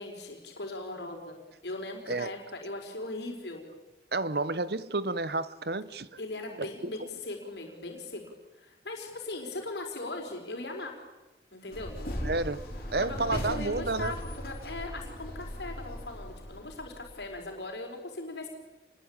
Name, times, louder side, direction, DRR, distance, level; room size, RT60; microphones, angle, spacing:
voice 1, 0.0-3.7 6.2-8.2 8.6-11.0 11.5-12.0 13.0-14.2 14.4-18.5, left 2 dB, 80° left, 4.9 m, -39 dB
voice 2, 4.1-6.2 6.6-6.9 12.2-12.6 12.9-14.1, right 3 dB, 65° right, 1.0 m, -31 dB
sound 1, 11.7-17.4, equal, 55° left, 5.9 m, -38 dB
28.5 x 21.5 x 8.9 m
head